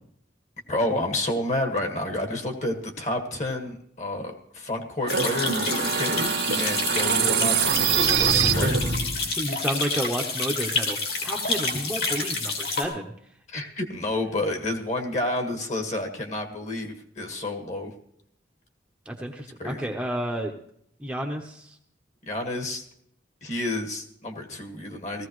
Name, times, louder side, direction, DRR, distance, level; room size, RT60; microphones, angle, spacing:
voice 1, 0.7-8.7 13.5-17.9 19.6-19.8 22.3-22.8 23.4-25.3, left 1 dB, 40° left, 3 dB, 1.7 m, -30 dB
sound 1, 5.0-9.3, right 6 dB, 75° right, 1.4 m, -24 dB
sound 2, 5.1-12.8, left 3 dB, 60° left, 3.0 m, -29 dB
voice 2, 9.2-13.1 13.5-13.6 19.1-20.6 21.0-21.8, equal, 5° right, 1 dB, 0.9 m, -31 dB
18.0 x 15.5 x 3.2 m, 0.69 s
head